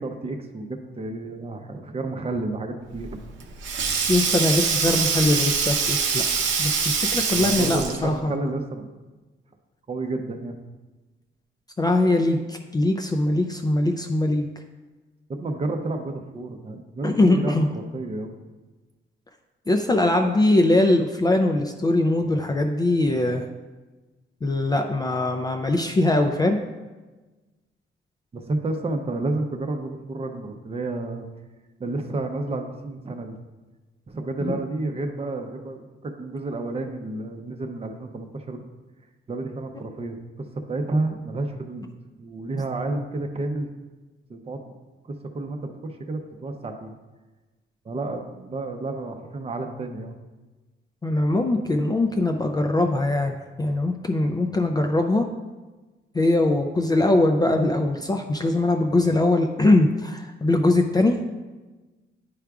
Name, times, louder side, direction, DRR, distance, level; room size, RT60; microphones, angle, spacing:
voice 1, 0.0-3.2 7.3-8.9 9.9-10.5 15.3-18.3 28.3-31.3 31.8-33.4 34.1-38.6 39.3-41.9 42.2-43.7 44.3-44.7 45.3-46.9 47.8-50.2, right 2 dB, 30° right, 5 dB, 0.6 m, -30 dB
Sink (filling or washing), 3.0-8.1, right 5 dB, 70° right, 0.7 m, -24 dB
voice 2, 4.1-6.2 6.6-6.7 7.0-8.4 11.8-14.5 17.0-17.7 19.7-23.4 24.4-26.6 34.4-34.6 51.0-55.3 56.1-61.2, left 2 dB, 20° left, 3 dB, 0.3 m, -21 dB
9.9 x 4.7 x 2.3 m, 1.2 s
wide cardioid pair, 145°, 20 cm